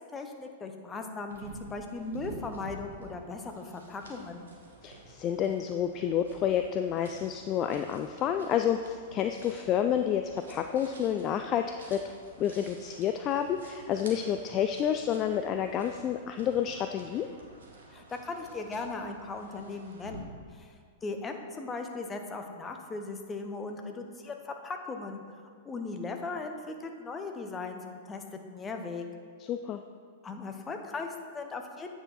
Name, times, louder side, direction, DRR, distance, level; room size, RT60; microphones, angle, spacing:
voice 1, 0.1-4.5 17.9-20.7 21.0-25.2 25.6-28.2 28.5-29.0 30.2-31.9, left 3 dB, 20° left, 4 dB, 0.8 m, -38 dB
sound 1, 1.3-20.2, right 2 dB, 75° right, 1.2 m, -50 dB
voice 2, 4.8-12.1 12.4-17.3 29.4-29.8, left 9 dB, 35° left, 7 dB, 0.3 m, -29 dB
8.7 x 4.9 x 4.0 m, 2.2 s
figure-of-eight pair, 100°, 0 cm